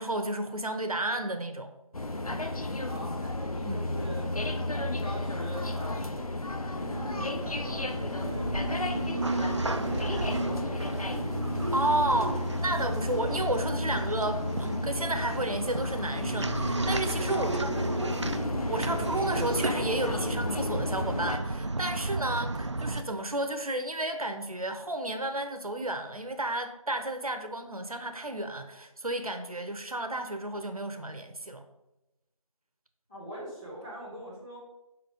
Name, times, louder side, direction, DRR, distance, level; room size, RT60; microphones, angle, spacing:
voice 1, 0.0-1.7 3.6-3.8 11.7-18.1 18.7-31.6, right 2 dB, 80° right, 7 dB, 0.9 m, -32 dB
sound 1, 1.9-21.4, left 2 dB, 85° left, 0.9 m, -32 dB
voice 2, 2.9-4.3 4.8-8.5 9.1-11.3 17.3-18.3 33.1-34.6, equal, 10° left, -14 dB, 2.2 m, -43 dB
sound 2, 6.8-23.0, right 2 dB, 55° right, 0.5 m, -34 dB
5.8 x 4.9 x 5.2 m, 0.92 s
figure-of-eight pair, 175°, 18 cm